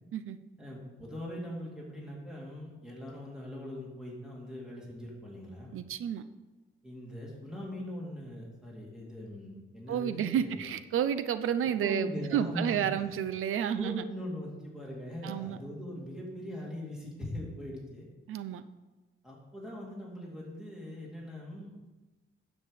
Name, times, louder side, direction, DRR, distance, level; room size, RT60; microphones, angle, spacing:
voice 1, 0.6-5.8 6.8-10.6 11.6-12.9 13.7-18.1 19.2-21.7, left 1 dB, 5° right, -4 dB, 2.6 m, -41 dB
voice 2, 5.7-6.2 9.9-14.1 15.2-15.6 18.3-18.6, right 9 dB, 80° right, 12 dB, 0.6 m, -31 dB
9.5 x 7.4 x 5.0 m, 1.2 s
wide cardioid pair, 150°, 21 cm